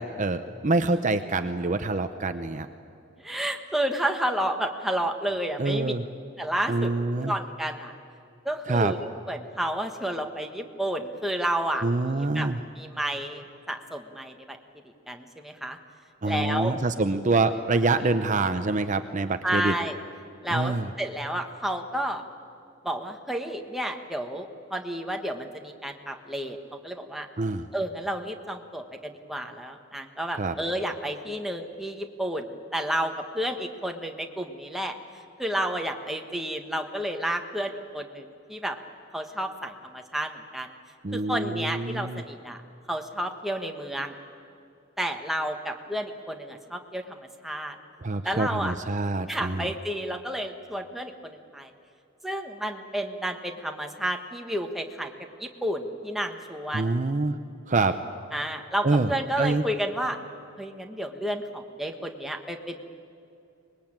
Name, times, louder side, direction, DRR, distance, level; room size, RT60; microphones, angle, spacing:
voice 1, 0.0-2.7 5.6-6.1 6.7-7.3 8.7-8.9 11.8-12.6 16.2-19.8 20.5-20.9 27.4-27.7 30.4-30.5 41.0-42.2 48.0-49.7 56.7-57.4 57.7-58.0 58.8-59.1 59.4-59.6, right 3 dB, 40° right, 9 dB, 0.7 m, -26 dB
voice 2, 3.2-5.9 6.4-6.9 7.2-7.9 8.4-9.0 9.3-11.8 12.1-12.5 12.8-14.6 15.1-15.8 16.2-16.7 19.4-20.0 20.4-22.2 22.8-27.3 27.7-34.9 35.4-38.8 39.1-40.7 41.1-42.6 42.9-44.1 45.0-47.8 48.2-48.7 49.3-51.7 52.2-55.1 55.4-56.9 58.3-60.2 60.6-62.8, right 1 dB, ahead, 3 dB, 1.4 m, -31 dB
24.5 x 20.5 x 8.9 m, 2.6 s
head